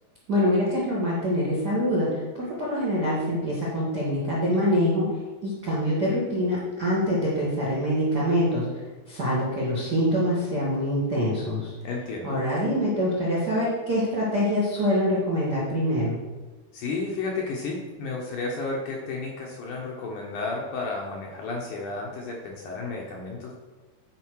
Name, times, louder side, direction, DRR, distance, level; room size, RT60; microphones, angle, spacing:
voice 1, 0.3-5.1 5.4-8.8 9.1-11.7 12.2-16.2, equal, 60° right, -6 dB, 1.0 m, -25 dB
voice 2, 11.8-12.4 16.7-23.5, left 3 dB, 70° left, -1 dB, 2.0 m, -32 dB
9.3 x 5.0 x 4.6 m, 1.3 s
omnidirectional pair, 4.5 m